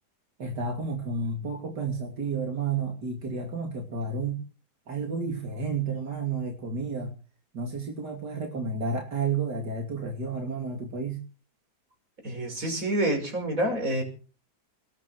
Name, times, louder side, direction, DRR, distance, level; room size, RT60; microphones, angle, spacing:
voice 1, 0.4-4.4 4.9-7.1 7.5-11.2, right 4 dB, 85° right, 1 dB, 3.4 m, -31 dB
voice 2, 12.2-14.0, right 1 dB, 55° right, 3 dB, 6.3 m, -27 dB
20.5 x 10.0 x 6.3 m, 0.37 s
omnidirectional pair, 1.8 m